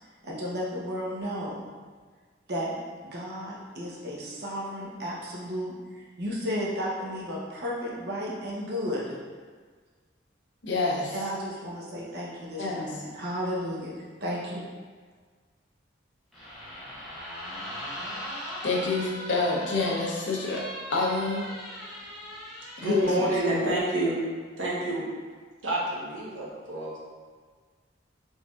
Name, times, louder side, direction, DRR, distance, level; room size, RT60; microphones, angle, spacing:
voice 1, 0.2-1.7 2.5-2.8 3.0-9.2 11.1-13.9 14.2-14.6, equal, 55° right, -5 dB, 0.8 m, -33 dB
voice 2, 10.6-11.2 12.6-12.9 18.6-21.5 22.8-23.1, left 3 dB, 70° left, -3 dB, 0.7 m, -27 dB
sound 1, 16.3-23.4, equal, ahead, 0.7 m, -39 dB
voice 3, 22.8-24.2 24.6-25.1 25.6-27.0, right 1 dB, 85° right, -6 dB, 1.1 m, -28 dB
4.0 x 3.5 x 2.4 m, 1.5 s
head